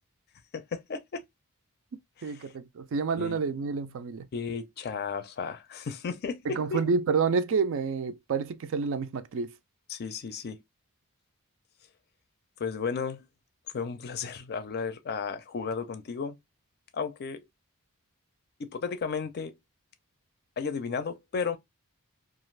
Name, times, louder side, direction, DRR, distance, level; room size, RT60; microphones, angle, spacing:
voice 1, 0.5-1.2 2.2-2.4 3.2-3.4 4.3-6.8 9.9-10.6 12.6-13.3 13.7-16.4 16.9-17.4 18.6-19.5 20.6-21.6, left 5 dB, 45° left, 0.4 m, -34 dB
voice 2, 2.2-4.3 6.5-9.5, right 5 dB, 60° right, 0.4 m, -28 dB
2.4 x 2.4 x 3.1 m
head